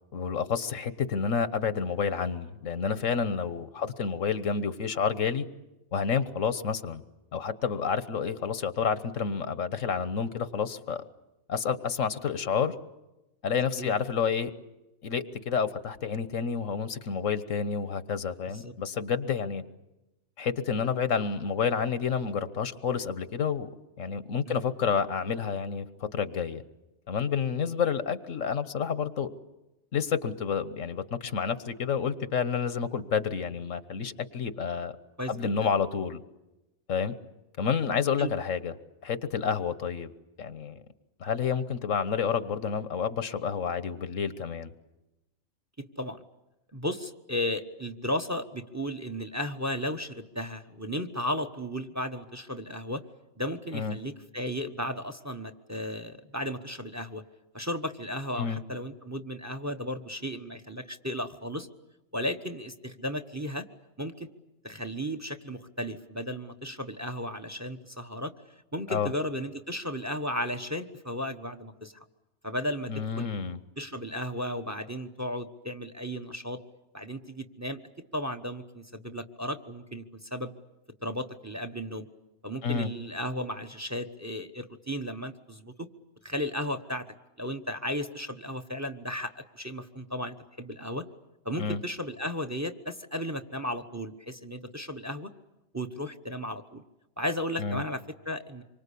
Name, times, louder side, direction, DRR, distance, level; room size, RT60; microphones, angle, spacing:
voice 1, 0.1-5.4 5.9-7.0 7.3-11.0 11.5-12.7 13.4-14.5 15.0-19.6 20.4-23.7 24.0-26.6 27.1-29.3 29.9-34.9 35.3-36.2 36.9-37.1 37.6-38.7 39.0-40.1 40.4-40.8 41.2-44.7 53.7-54.0 58.4-58.6 68.9-69.1 72.9-73.6 82.6-82.9 91.6-91.8 97.6-97.8, left 6 dB, 90° left, 13 dB, 1.6 m, -29 dB
voice 2, 45.8-46.2 46.7-53.0 53.4-57.2 57.5-61.7 62.1-63.6 64.0-64.3 64.6-68.3 68.7-71.9 72.4-73.3 73.8-76.6 76.9-77.8 78.1-80.5 81.0-82.1 82.4-85.9 86.2-87.0 87.4-91.0 91.4-95.3 95.7-96.8 97.2-98.6, equal, 15° right, 10 dB, 1.2 m, -34 dB
26.5 x 24.0 x 8.5 m, 0.98 s
omnidirectional pair, 1.3 m